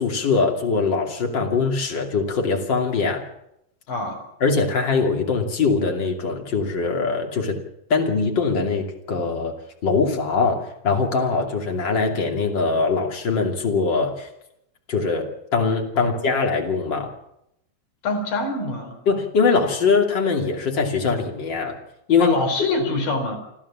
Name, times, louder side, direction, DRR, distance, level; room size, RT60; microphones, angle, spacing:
voice 1, 0.0-3.2 4.4-7.6 7.9-9.5 9.8-14.3 14.9-15.2 15.5-17.1 19.1-21.8 22.1-22.3, left 4 dB, 30° left, 2 dB, 2.6 m, -22 dB
voice 2, 3.9-4.2 16.0-16.1 18.0-19.0 22.2-23.4, left 3 dB, 50° left, 4 dB, 5.3 m, -25 dB
28.5 x 12.5 x 7.4 m, 0.80 s
omnidirectional pair, 5.2 m